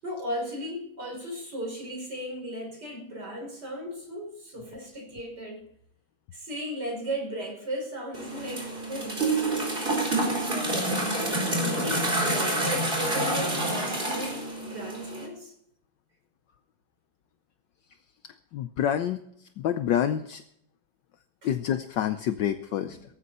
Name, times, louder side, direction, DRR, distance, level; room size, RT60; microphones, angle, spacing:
voice 1, 0.0-5.6 6.3-9.4 10.4-10.9 11.6-15.5 21.4-21.5 22.8-23.0, equal, 55° right, 1 dB, 6.2 m, -36 dB
sound 1, 8.1-15.3, right 2 dB, 25° right, 4.5 m, -28 dB
voice 2, 18.5-19.2 19.6-20.4 21.4-23.2, left 10 dB, 70° left, 9 dB, 1.3 m, -27 dB
18.0 x 14.5 x 4.3 m, 0.72 s
omnidirectional pair, 2.2 m